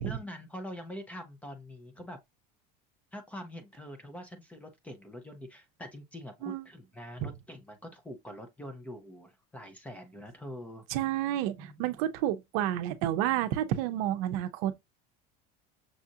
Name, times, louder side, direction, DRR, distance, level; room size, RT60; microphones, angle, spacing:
voice 1, 0.0-2.2 3.1-10.8 11.6-12.0, equal, 5° left, 0.5 m, -44 dB
voice 2, 10.9-14.8, right 12 dB, 60° right, 0.6 m, -30 dB
6.3 x 2.4 x 2.7 m
cardioid pair, 170°, 21 cm